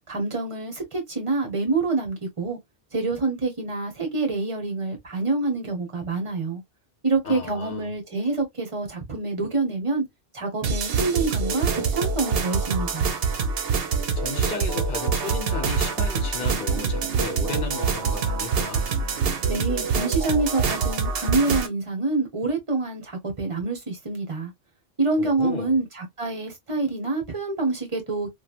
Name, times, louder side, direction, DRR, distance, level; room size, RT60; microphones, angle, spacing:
voice 1, 0.1-2.6 2.9-6.6 7.0-10.0 10.3-13.1 19.5-24.5 25.0-28.3, right 3 dB, 30° right, 1.0 m, -26 dB
voice 2, 7.2-7.9 14.2-18.9 25.2-25.8, left 4 dB, 55° left, 1.0 m, -34 dB
sound 1, 10.6-21.7, right 5 dB, 70° right, 0.8 m, -25 dB
3.1 x 2.4 x 2.4 m
omnidirectional pair, 1.1 m